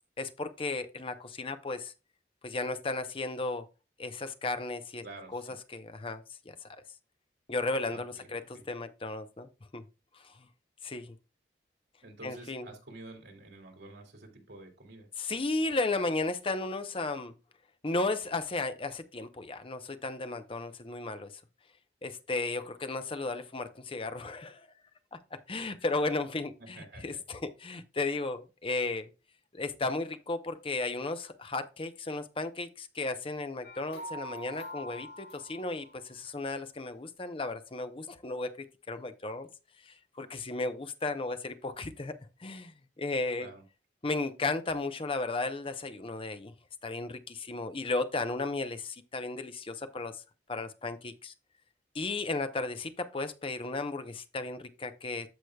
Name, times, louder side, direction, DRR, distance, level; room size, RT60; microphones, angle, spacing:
voice 1, 0.2-1.9 2.4-3.7 4.0-5.0 5.3-5.4 5.7-6.8 7.5-9.8 10.2-10.5 10.8-11.2 12.2-12.7 15.2-17.3 17.8-21.3 22.0-24.7 25.1-25.2 25.5-29.1 29.5-38.5 38.9-39.5 39.8-42.1 42.4-43.5 44.0-46.5 46.8-50.2 50.5-51.3 51.9-55.3, left 3 dB, 30° left, 0.7 m, -34 dB
voice 2, 5.0-5.6 7.9-8.6 12.0-15.1 26.6-27.2 43.4-43.6, right 2 dB, 80° right, 2.6 m, -49 dB
sound 1, 33.6-36.1, equal, 85° left, 4.5 m, -44 dB
14.0 x 4.9 x 2.3 m
head